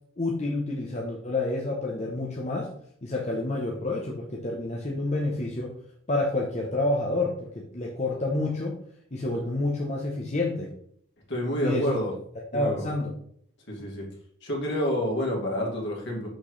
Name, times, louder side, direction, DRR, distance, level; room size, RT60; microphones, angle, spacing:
voice 1, 0.2-2.7 3.0-5.7 6.1-8.8 9.1-10.7 11.6-11.9 12.5-13.1, left 2 dB, 35° left, -2 dB, 0.8 m, -28 dB
voice 2, 11.3-12.1 12.5-12.9 13.7-14.1 14.4-16.3, equal, 60° left, -2 dB, 2.3 m, -28 dB
6.2 x 6.0 x 3.2 m, 0.66 s
head